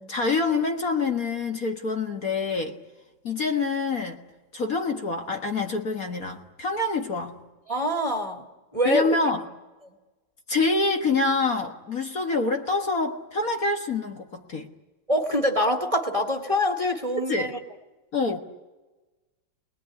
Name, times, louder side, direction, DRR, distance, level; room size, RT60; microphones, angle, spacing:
voice 1, 0.0-2.8 3.2-4.2 4.5-7.4 8.9-9.4 10.5-14.7 17.3-17.5 18.1-18.4, left 3 dB, 45° left, 4 dB, 1.9 m, -26 dB
voice 2, 7.7-8.5 8.7-9.1 15.1-17.6, equal, 15° right, 3 dB, 1.9 m, -25 dB
28.0 x 20.0 x 9.7 m, 1.2 s
omnidirectional pair, 2.2 m